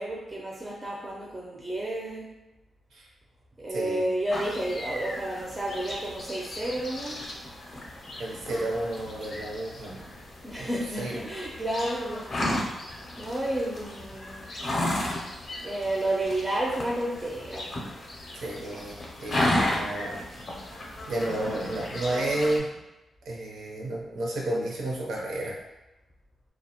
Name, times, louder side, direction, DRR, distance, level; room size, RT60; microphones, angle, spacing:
voice 1, 0.0-2.4 3.6-7.3 10.4-12.3 13.1-14.4 15.6-17.8 19.8-19.9, right 1 dB, 15° right, -4 dB, 0.4 m, -31 dB
voice 2, 3.7-4.1 8.2-10.1 10.6-10.7 11.0-11.1 18.3-20.5 21.1-22.7 23.3-25.6, right 1 dB, 85° right, -2 dB, 0.6 m, -31 dB
sound 1, 4.3-22.6, left 1 dB, 40° left, 0.5 m, -34 dB
2.4 x 2.0 x 2.8 m, 0.96 s
wide cardioid pair, 135°, 0 cm